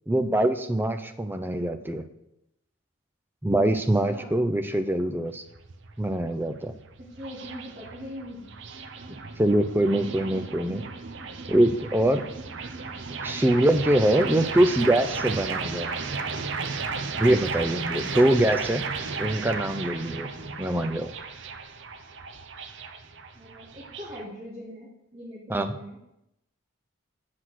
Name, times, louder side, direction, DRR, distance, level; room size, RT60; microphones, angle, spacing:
voice 1, 0.1-2.0 3.4-5.4 6.0-6.7 9.4-10.8 11.5-12.2 13.2-15.9 17.2-18.8 19.2-20.3 20.6-21.1 25.5-25.7, right 1 dB, 10° right, 7 dB, 0.5 m, -23 dB
voice 2, 3.7-4.4 7.0-8.5 23.4-26.0, equal, 30° right, -6 dB, 2.0 m, -41 dB
sound 1, 5.3-24.2, right 4 dB, 60° right, 0.7 m, -34 dB
8.0 x 5.8 x 6.3 m, 0.85 s
head